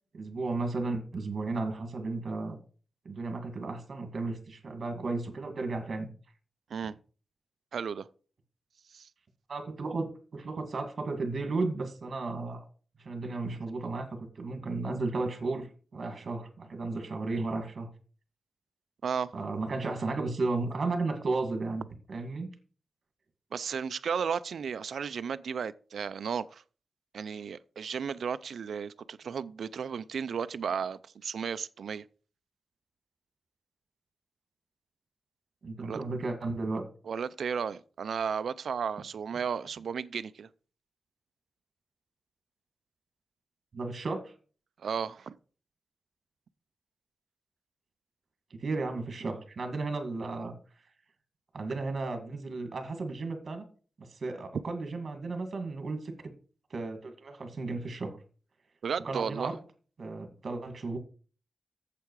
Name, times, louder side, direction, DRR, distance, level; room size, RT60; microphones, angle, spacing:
voice 1, 0.1-2.6 3.1-6.1 9.5-12.6 13.0-15.7 15.9-17.9 19.3-22.5 35.6-36.8 43.7-44.3 48.5-50.5 51.5-53.6 54.0-56.1 56.7-58.2 59.0-59.6 60.0-61.0, right 3 dB, 55° right, 2.1 m, -34 dB
voice 2, 7.7-8.1 8.9-9.1 19.0-19.3 23.5-26.6 27.1-32.0 35.8-36.0 37.1-40.5 44.8-45.4 58.8-59.5, right 6 dB, 85° right, 0.5 m, -34 dB
8.3 x 7.6 x 4.7 m
wide cardioid pair, 125°, 0 cm